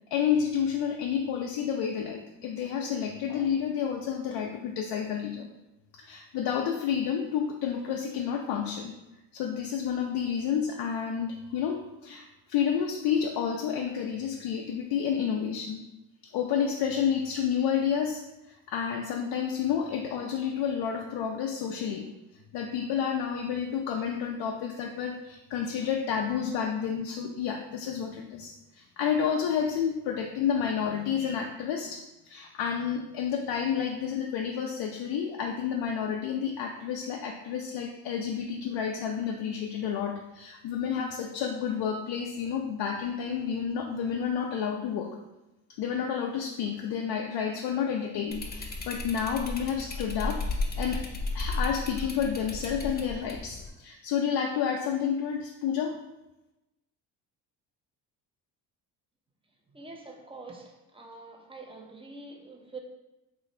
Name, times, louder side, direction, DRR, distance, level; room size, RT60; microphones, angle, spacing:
voice 1, 0.1-5.5 6.0-8.9 9.3-15.8 16.3-18.2 18.5-22.1 22.5-45.2 45.8-50.5 50.8-51.0 51.3-56.0, left 7 dB, 70° left, 1 dB, 0.5 m, -30 dB
sound 1, 48.3-53.7, left 2 dB, 25° left, 0.6 m, -34 dB
voice 2, 59.7-62.8, right 3 dB, 15° right, 1 dB, 0.7 m, -45 dB
3.1 x 2.5 x 4.2 m, 0.98 s
supercardioid pair, 80°, 43 cm